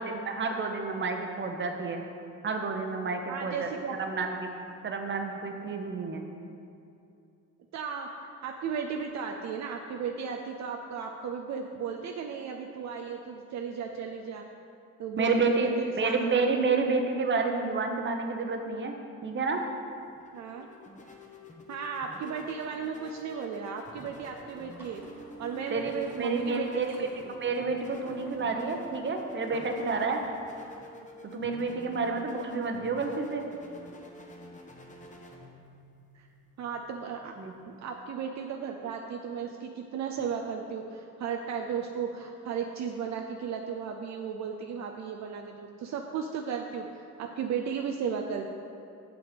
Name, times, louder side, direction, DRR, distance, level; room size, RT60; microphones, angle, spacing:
voice 1, 0.0-2.0 2.4-3.7 4.0-4.5 4.8-6.3 15.2-15.7 16.0-19.0 19.2-19.6 25.7-25.9 26.2-26.9 27.3-30.2 31.2-33.4 37.4-37.5, right 4 dB, 40° right, 4 dB, 0.9 m, -29 dB
voice 2, 3.3-4.0 7.7-8.1 8.4-14.4 15.0-16.5 20.3-20.7 21.7-25.0 25.4-27.3 32.0-32.3 36.1-36.3 36.6-37.3 37.8-46.9 47.2-48.5, right 6 dB, 65° right, 2 dB, 0.6 m, -35 dB
sound 1, 19.9-38.1, left 1 dB, 25° left, 1.0 m, -49 dB
sound 2, 23.8-30.8, equal, 5° right, 1.5 m, -51 dB
7.1 x 6.0 x 5.1 m, 2.6 s
cardioid pair, 90°, 30 cm